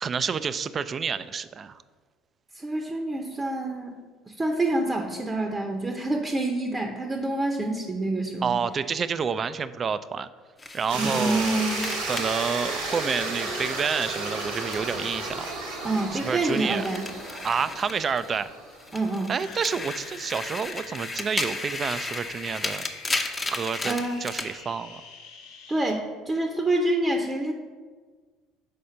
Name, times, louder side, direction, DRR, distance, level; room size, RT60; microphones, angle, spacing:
voice 1, 0.0-1.8 8.4-10.3 10.7-11.7 12.1-15.5 16.2-16.8 17.4-18.5 19.3-22.8 23.5-25.0, right 6 dB, 40° right, 14 dB, 0.3 m, -29 dB
voice 2, 2.6-3.9 4.4-8.6 11.0-11.9 15.8-17.1 18.9-19.3 23.8-24.2 25.7-27.5, right 2 dB, 20° right, 3 dB, 0.7 m, -27 dB
sound 1, 10.6-15.2 15.5-18.4 18.8-24.5, left 3 dB, 20° left, 0.7 m, -35 dB
sound 2, 10.9-18.9, right 2 dB, 85° right, 1.5 m, -33 dB
sound 3, 19.4-25.9, left 5 dB, 75° left, 0.8 m, -45 dB
5.1 x 4.2 x 5.6 m, 1.5 s
hypercardioid pair, 65°, 0 cm